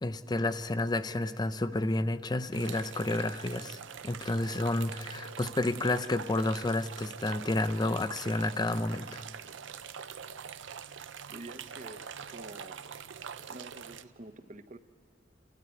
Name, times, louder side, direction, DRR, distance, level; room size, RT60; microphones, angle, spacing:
voice 1, 0.0-9.2, left 2 dB, 20° left, 11 dB, 0.5 m, -30 dB
sound 1, 2.5-14.0, right 7 dB, 80° right, 0.6 m, -44 dB
voice 2, 11.3-12.8 13.5-14.8, right 2 dB, 40° right, 10 dB, 0.8 m, -48 dB
29.5 x 12.5 x 9.6 m, 2.7 s
head